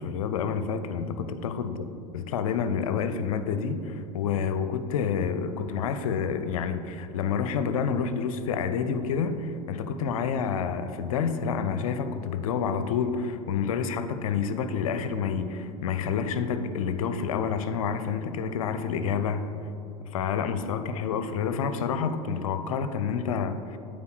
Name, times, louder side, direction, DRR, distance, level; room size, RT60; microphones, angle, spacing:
voice 1, 0.0-1.7 2.1-19.5 20.1-23.8, left 6 dB, 75° left, 10 dB, 0.5 m, -28 dB
8.5 x 4.3 x 4.4 m, 2.7 s
hypercardioid pair, 85°, 18 cm